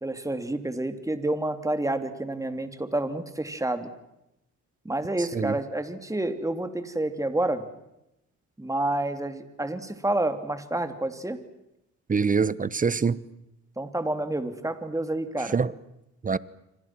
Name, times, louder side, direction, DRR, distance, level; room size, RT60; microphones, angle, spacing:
voice 1, 0.0-3.9 4.8-7.6 8.6-11.4 13.8-15.5, right 1 dB, 10° right, 2.9 m, -29 dB
voice 2, 12.1-13.2 15.5-15.7 16.2-16.4, right 5 dB, 25° right, 1.0 m, -24 dB
28.0 x 25.5 x 6.1 m
cardioid pair, 90°, 30 cm